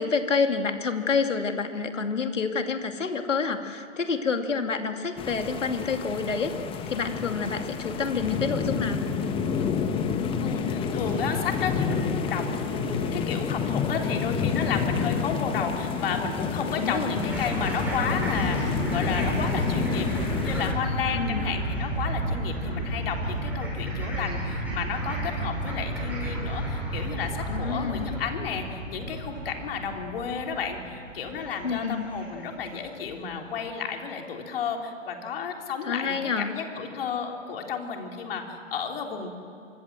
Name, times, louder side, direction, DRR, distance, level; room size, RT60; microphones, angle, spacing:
voice 1, 0.0-6.6 6.9-9.0 16.8-17.4 21.1-21.5 27.5-28.1 31.6-32.1 35.9-36.5, left 5 dB, 75° left, 6 dB, 2.6 m, -28 dB
sound 1, 5.2-20.7, left 6 dB, 15° left, 1.3 m, -29 dB
sound 2, 7.0-14.7, right 3 dB, 40° right, 7.2 m, -45 dB
voice 2, 10.4-39.3, left 6 dB, 50° left, 2 dB, 3.8 m, -32 dB
sound 3, 17.3-32.7, right 1 dB, 5° right, 7.6 m, -31 dB
25.0 x 23.0 x 7.6 m, 2.4 s
figure-of-eight pair, 130°, 38 cm